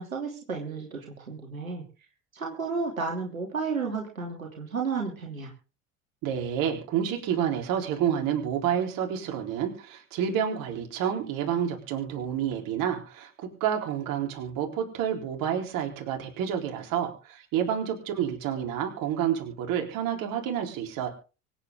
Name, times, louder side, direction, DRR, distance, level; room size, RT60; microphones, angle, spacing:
voice 1, 0.0-1.8 2.3-5.5, right 4 dB, 90° right, 0 dB, 2.9 m, -32 dB
voice 2, 6.2-13.3 13.6-21.1, right 9 dB, 55° right, 2 dB, 4.0 m, -29 dB
24.5 x 9.0 x 3.7 m, 0.34 s
figure-of-eight pair, 70°, 40 cm